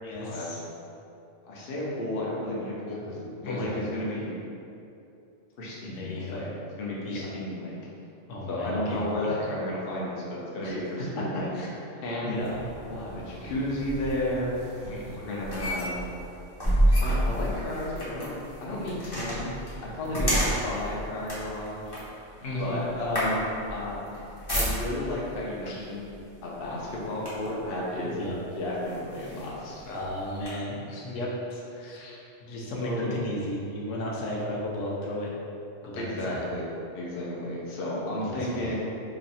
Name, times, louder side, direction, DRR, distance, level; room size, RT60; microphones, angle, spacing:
voice 1, 0.0-0.6 2.9-3.1 3.4-3.8 5.9-6.5 7.0-7.3 8.3-9.4 10.6-11.2 11.5-12.6 12.9-13.0 14.8-15.2 22.4-22.9 25.6-25.8 28.0-28.4 29.8-35.3 35.8-36.4 38.3-38.7, left 1 dB, 85° left, -4 dB, 1.0 m, -35 dB
voice 2, 1.4-4.3 5.6-6.5 6.8-7.8 8.5-11.5 12.0-12.4 12.9-14.5 15.1-16.0 17.0-18.3 18.6-19.5 19.8-22.0 22.6-23.4 23.7-24.0 24.5-26.0 26.4-28.2 28.6-29.8 32.8-33.1 35.9-36.7 36.9-38.8, left 1 dB, 55° left, -5 dB, 0.8 m, -32 dB
sound 1, 12.4-25.2 26.0-26.2 26.6-27.7 28.3-28.4 28.8-30.5, equal, 25° left, 0.7 m, -30 dB
3.0 x 2.5 x 4.0 m, 2.7 s
omnidirectional pair, 1.3 m